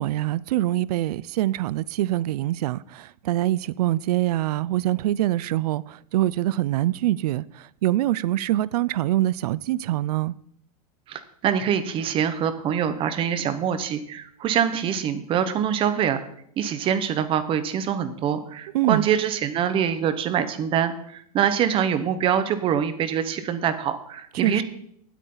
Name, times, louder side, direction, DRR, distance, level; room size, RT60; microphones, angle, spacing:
voice 1, 0.0-10.3 18.7-19.1 24.3-24.6, right 15 dB, 70° right, 0.5 m, -24 dB
voice 2, 11.1-16.2 16.6-24.6, right 8 dB, 25° right, 1.1 m, -24 dB
19.0 x 8.4 x 3.9 m
supercardioid pair, 150°, 21 cm